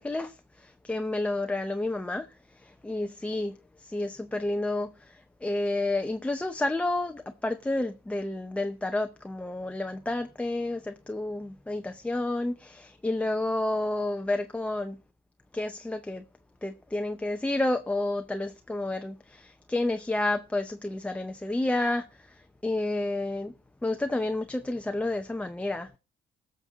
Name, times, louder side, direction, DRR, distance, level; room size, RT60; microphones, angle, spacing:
voice 1, 0.0-2.3 2.5-15.0 15.5-16.2 16.6-23.5 23.8-25.9, left 2 dB, 5° left, 0.6 m, -30 dB
17.5 x 6.6 x 3.9 m
cardioid pair, 110°, 17 cm